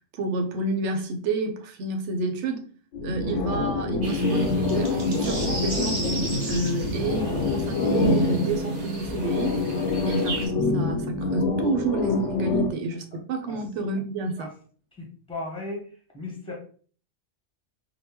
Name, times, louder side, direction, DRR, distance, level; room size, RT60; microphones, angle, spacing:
voice 1, 0.0-2.6 3.0-6.0 6.5-9.6 10.0-14.5, right 2 dB, 80° right, 5 dB, 0.9 m, -29 dB
sound 1, 2.9-12.7, left 2 dB, 90° left, 1.0 m, -26 dB
sound 2, 4.0-10.5, right 2 dB, 45° right, 0.8 m, -36 dB
voice 2, 15.0-15.9 16.1-16.5, left 2 dB, 5° left, -2 dB, 1.0 m, -36 dB
3.9 x 2.1 x 2.8 m, 0.42 s
omnidirectional pair, 1.2 m